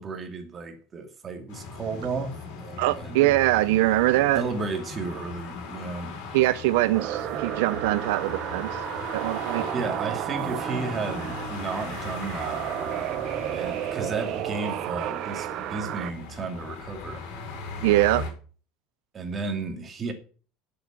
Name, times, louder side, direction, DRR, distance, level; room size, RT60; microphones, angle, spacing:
voice 1, 0.0-3.3 4.3-6.1 9.7-12.7 13.5-17.3 19.1-20.1, right 4 dB, 25° right, 2.7 m, -33 dB
sound 1, 1.5-18.3, left 4 dB, 70° left, 5.3 m, -39 dB
voice 2, 2.8-4.4 6.3-8.7 9.1-9.6 17.8-18.3, right 17 dB, 85° right, 0.6 m, -22 dB
sound 2, 6.9-16.1, right 13 dB, 45° right, 0.8 m, -32 dB
11.0 x 8.1 x 7.5 m
cardioid pair, 160°, 0 cm